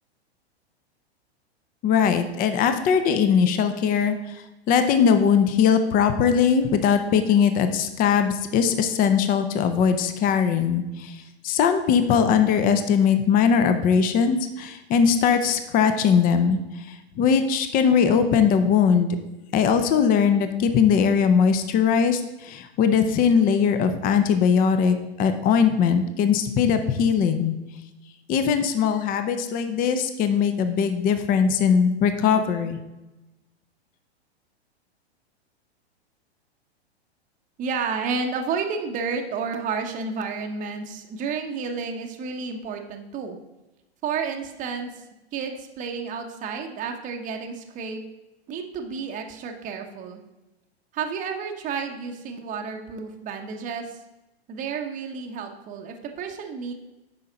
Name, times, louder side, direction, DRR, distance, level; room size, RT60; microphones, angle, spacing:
voice 1, 1.8-19.1 19.5-27.5 28.3-32.8, left 7 dB, 25° left, 9 dB, 0.7 m, -20 dB
voice 2, 37.6-43.4 44.0-45.0 45.3-48.0 48.5-50.2 50.9-54.0 54.5-56.7, right 5 dB, 25° right, 3 dB, 0.8 m, -31 dB
9.0 x 5.6 x 3.8 m, 1.0 s
hypercardioid pair, 115°, 32 cm